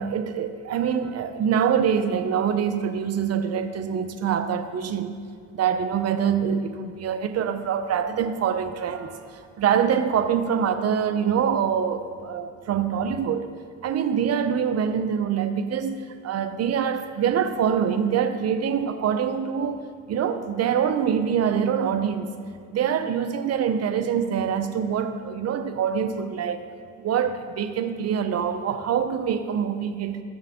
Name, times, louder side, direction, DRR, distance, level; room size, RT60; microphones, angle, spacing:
voice 1, 0.0-5.2 5.5-13.5 13.8-19.8 20.1-22.3 22.7-26.7 27.0-30.2, right 7 dB, 55° right, 8 dB, 0.7 m, -25 dB
13.5 x 6.4 x 3.6 m, 2.3 s
cardioid pair, 90°, 30 cm